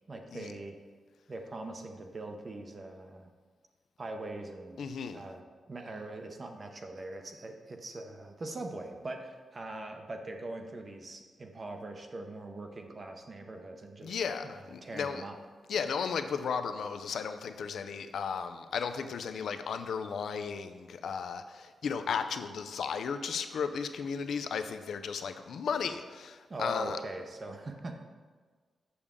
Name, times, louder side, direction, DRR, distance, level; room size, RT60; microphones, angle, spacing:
voice 1, 0.1-0.8 1.3-3.3 4.0-4.8 5.1-5.4 5.7-14.2 14.4-15.4 26.5-28.0, right 2 dB, 30° right, 4 dB, 0.6 m, -42 dB
voice 2, 4.8-5.3 14.0-15.2 15.7-27.0, left 6 dB, 75° left, 9 dB, 0.5 m, -35 dB
7.0 x 6.6 x 3.6 m, 1.5 s
wide cardioid pair, 150°, 0 cm